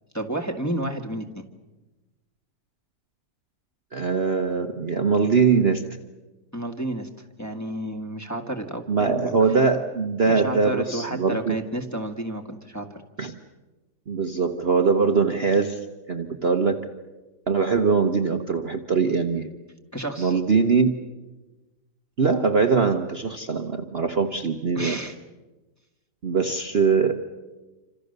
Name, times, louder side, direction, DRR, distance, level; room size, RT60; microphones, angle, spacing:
voice 1, 0.1-1.4 6.5-7.1 7.4-9.3 10.3-12.9 19.9-20.3 24.8-25.1, right 1 dB, 10° left, 2 dB, 1.8 m, -31 dB
voice 2, 3.9-5.8 8.9-11.6 13.2-13.4 14.1-15.8 16.1-16.8 17.5-19.5 20.2-20.9 22.2-25.0 26.2-27.1, right 5 dB, 40° right, 5 dB, 1.2 m, -22 dB
28.0 x 26.0 x 6.7 m, 1.2 s
omnidirectional pair, 1.8 m